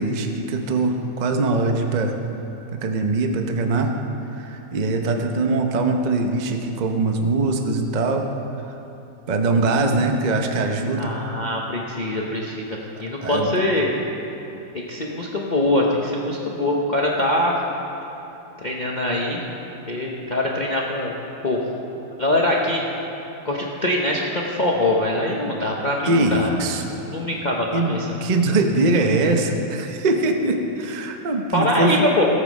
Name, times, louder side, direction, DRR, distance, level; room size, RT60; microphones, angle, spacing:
voice 1, 0.0-2.2 2.7-4.0 4.3-8.3 8.6-8.7 9.3-11.2 13.2-13.6 26.0-27.0 27.7-32.1, right 2 dB, 45° right, 4 dB, 0.5 m, -22 dB
voice 2, 11.0-13.9 14.7-17.5 18.6-19.4 19.9-21.2 21.4-21.6 22.0-22.8 23.4-26.5 26.8-28.1 31.5-32.3, left 1 dB, 35° left, -2 dB, 0.7 m, -23 dB
17.5 x 8.0 x 5.3 m, 3.0 s
omnidirectional pair, 2.1 m